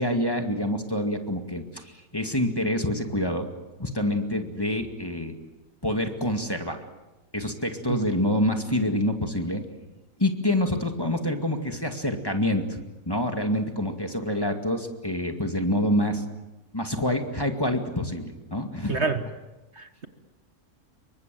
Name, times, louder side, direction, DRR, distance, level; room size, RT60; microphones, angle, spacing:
voice 1, 0.0-3.5 3.8-5.3 5.8-6.8 7.3-9.6 10.2-12.8 13.1-16.2 16.7-19.1, left 1 dB, 15° left, 4 dB, 2.1 m, -27 dB
voice 2, 18.9-19.2 19.8-20.1, right 4 dB, 50° right, 8 dB, 1.6 m, -28 dB
27.5 x 23.5 x 7.7 m, 1.1 s
omnidirectional pair, 1.6 m